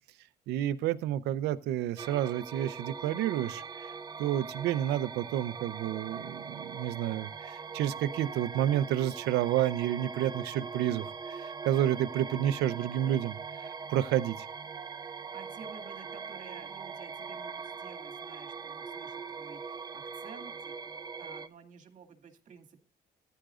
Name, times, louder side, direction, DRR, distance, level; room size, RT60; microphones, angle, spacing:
voice 1, 0.5-3.9 4.2-14.5, right 12 dB, 85° right, 14 dB, 0.7 m, -30 dB
sound 1, 2.0-21.5, right 5 dB, 25° right, 0.7 m, -41 dB
voice 2, 15.1-22.8, right 6 dB, 50° right, 4 dB, 2.4 m, -52 dB
14.5 x 10.5 x 2.5 m, 0.31 s
cardioid pair, 110°, 17 cm